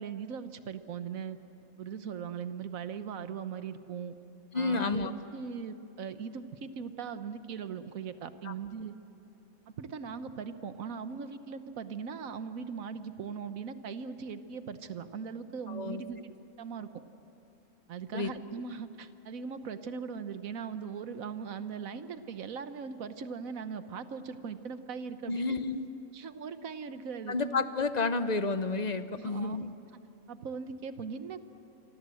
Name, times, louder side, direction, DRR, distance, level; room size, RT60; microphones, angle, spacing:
voice 1, 0.0-1.4 1.8-4.2 4.5-8.9 9.8-16.3 16.6-16.9 17.9-25.6 26.1-27.4 29.2-29.6 30.3-31.4, right 6 dB, 70° right, 11 dB, 1.4 m, -39 dB
voice 2, 4.5-5.1 8.4-8.5 15.7-16.0 18.1-18.3 25.3-25.9 27.3-29.7, left 3 dB, 35° left, 11 dB, 0.7 m, -30 dB
28.0 x 24.5 x 7.7 m, 2.8 s
omnidirectional pair, 1.5 m